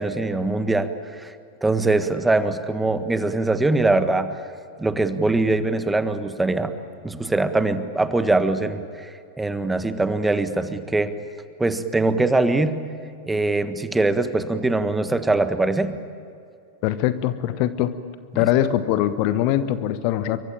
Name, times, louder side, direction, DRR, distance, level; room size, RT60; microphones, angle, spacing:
voice 1, 0.0-1.3 1.6-4.3 4.8-6.7 7.0-11.1 11.6-12.8 13.2-15.9 18.3-18.5, right 2 dB, 10° right, 11 dB, 1.5 m, -22 dB
voice 2, 16.8-18.0 18.3-20.4, left 12 dB, 45° left, 13 dB, 1.0 m, -22 dB
27.0 x 24.0 x 9.0 m, 2.4 s
figure-of-eight pair, 90°, 0 cm